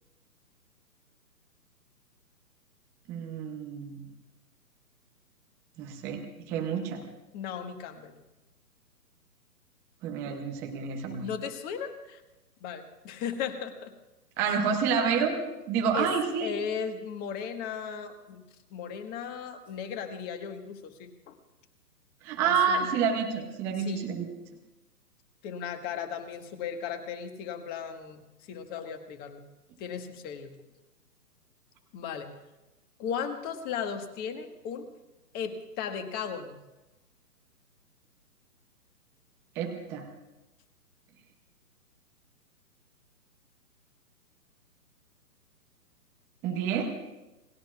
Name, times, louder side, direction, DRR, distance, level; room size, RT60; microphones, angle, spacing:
voice 1, 3.1-4.1 5.8-6.2 6.5-7.0 10.0-11.3 14.4-15.4 15.7-16.5 22.2-24.3 39.6-40.1 46.4-46.9, right 6 dB, 5° right, 3 dB, 0.5 m, -28 dB
voice 2, 7.3-8.2 11.2-12.2 12.6-13.9 14.4-14.6 15.9-16.1 16.4-18.4 18.7-21.3 22.4-22.9 23.8-24.1 25.4-28.2 28.5-29.4 29.8-30.5 31.9-32.3 33.0-34.9 35.3-36.6, left 7 dB, 20° left, 7 dB, 1.4 m, -36 dB
28.5 x 20.5 x 2.4 m, 1.0 s
figure-of-eight pair, 135°, 48 cm